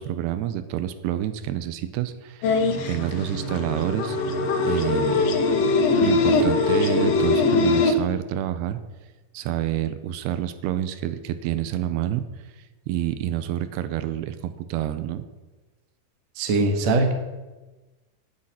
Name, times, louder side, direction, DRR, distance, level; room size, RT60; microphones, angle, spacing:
voice 1, 0.0-4.2 4.6-5.2 6.0-8.8 9.3-12.2 12.6-15.2, right 11 dB, 90° right, 11 dB, 2.8 m, -28 dB
sound 1, 2.4-7.9, left 3 dB, 75° left, 1.5 m, -22 dB
voice 2, 16.4-17.1, right 3 dB, 55° right, 5 dB, 2.1 m, -21 dB
9.7 x 9.0 x 8.8 m, 1.2 s
omnidirectional pair, 4.7 m